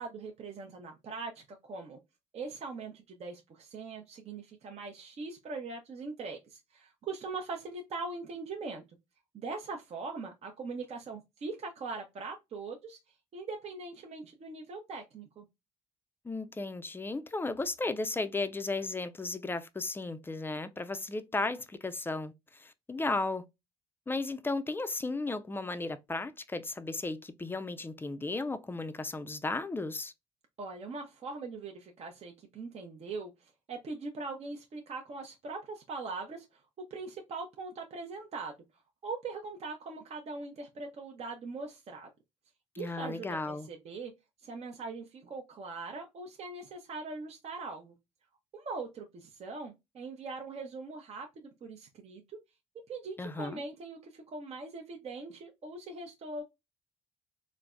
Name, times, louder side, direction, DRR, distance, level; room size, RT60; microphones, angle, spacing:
voice 1, 0.0-2.0 2.3-8.8 9.3-13.0 13.3-15.5 30.6-36.6 36.9-38.5 39.0-42.1 42.8-44.1 44.4-47.9 48.5-52.4 52.9-56.4, right 3 dB, 45° right, 0.6 m, -41 dB
voice 2, 16.2-23.4 24.1-30.1 42.8-43.7 53.2-53.6, left 3 dB, 15° left, 0.4 m, -35 dB
3.3 x 2.1 x 2.3 m
supercardioid pair, 65°, 14 cm